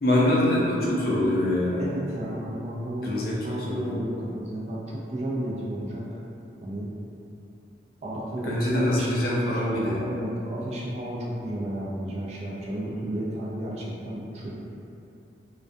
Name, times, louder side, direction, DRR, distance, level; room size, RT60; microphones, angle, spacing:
voice 1, 0.0-1.8 3.0-4.0 8.4-10.0, left 1 dB, 55° left, -6 dB, 0.5 m, -24 dB
voice 2, 1.8-6.0 6.6-6.9 8.0-14.6, right 1 dB, 35° right, -5 dB, 0.3 m, -33 dB
2.3 x 2.2 x 2.5 m, 2.6 s
head